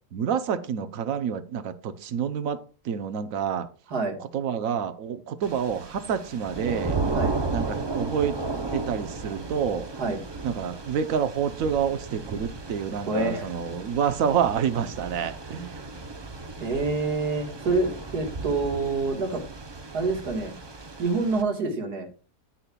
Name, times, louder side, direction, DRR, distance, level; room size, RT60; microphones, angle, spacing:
voice 1, 0.1-2.6 2.8-3.7 4.3-7.0 7.5-8.4 8.7-9.9 10.4-15.7, right 7 dB, 65° right, 1.2 m, -28 dB
Thunder / Rain, 5.4-21.4, right 3 dB, 40° right, 0.3 m, -34 dB
voice 2, 13.1-13.5 16.6-19.4 19.9-20.5 21.0-22.1, right 3 dB, 85° right, 2.2 m, -27 dB
9.9 x 8.3 x 2.3 m
omnidirectional pair, 1.6 m